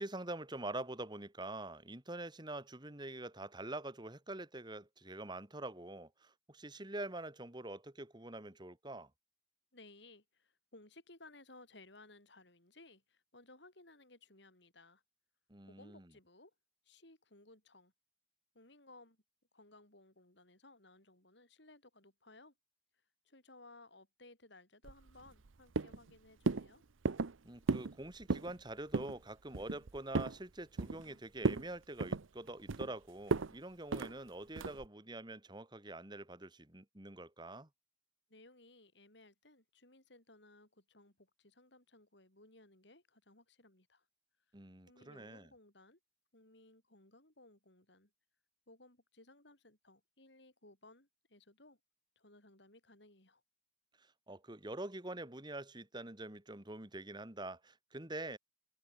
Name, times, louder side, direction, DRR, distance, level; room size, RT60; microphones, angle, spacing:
voice 1, 0.0-9.1 15.5-16.1 27.4-37.7 44.5-45.5 54.0-58.4, right 2 dB, 20° right, 2.1 m, -45 dB
voice 2, 9.7-15.0 15.6-16.5 16.9-17.9 18.5-19.2 19.5-22.5 23.2-26.8 38.3-44.0 44.9-46.0 46.3-48.1 48.7-51.8 52.2-53.4, left 2 dB, 60° left, 5.6 m, -60 dB
sound 1, 24.8-25.5 25.8-26.1 26.5-26.7 27.1-27.4 27.7-27.9 28.2-28.5 28.9-29.2 29.5-30.4 30.8-31.1 31.4-31.7 32.0-32.9 33.3-33.5 33.9-34.1 34.6-34.9, right 3 dB, 90° right, 0.8 m, -35 dB
head